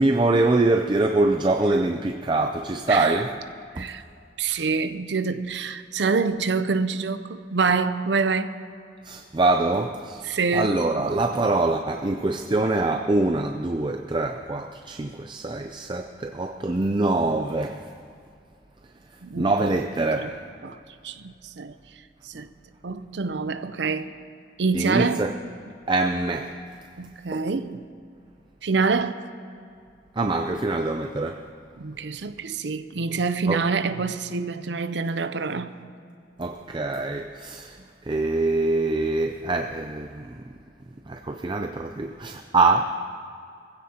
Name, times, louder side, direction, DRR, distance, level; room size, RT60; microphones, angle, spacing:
voice 1, 0.0-3.3 3.8-3.9 9.0-17.9 19.4-20.4 22.3-22.5 24.7-25.3 25.9-26.5 27.3-27.5 30.2-31.4 33.5-33.6 36.4-37.8 38.0-40.4 41.1-42.9, right 2 dB, 25° right, 0.4 m, -24 dB
voice 2, 4.4-8.6 10.3-11.1 19.2-19.5 20.2-20.3 20.6-20.8 21.0-21.7 22.3-22.5 22.8-24.1 24.6-25.3 27.0-27.8 28.6-29.2 31.8-35.8, right 4 dB, 80° right, 0.6 m, -26 dB
21.5 x 16.0 x 2.9 m
head